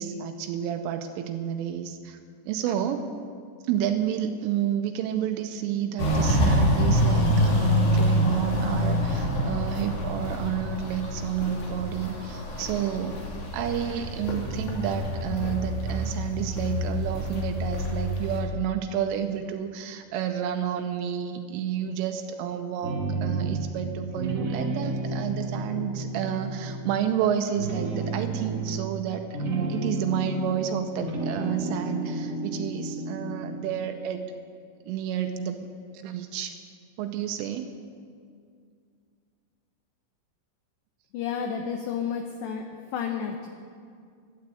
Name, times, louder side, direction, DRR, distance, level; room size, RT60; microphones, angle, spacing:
voice 1, 0.0-2.2 2.5-3.1 3.7-13.2 13.5-34.2 34.8-35.7 35.9-36.6 37.0-37.7, right 9 dB, 85° right, 6 dB, 3.1 m, -30 dB
Walk footsteps, 6.0-18.4, equal, 50° left, 3.5 m, -26 dB
sound 1, 22.8-23.8 24.1-27.1 27.5-30.7 30.9-33.7, right 2 dB, 65° right, 1.3 m, -31 dB
voice 2, 41.1-43.5, left 7 dB, 80° left, 4 dB, 2.6 m, -31 dB
13.0 x 10.5 x 8.2 m, 2.2 s
omnidirectional pair, 6.0 m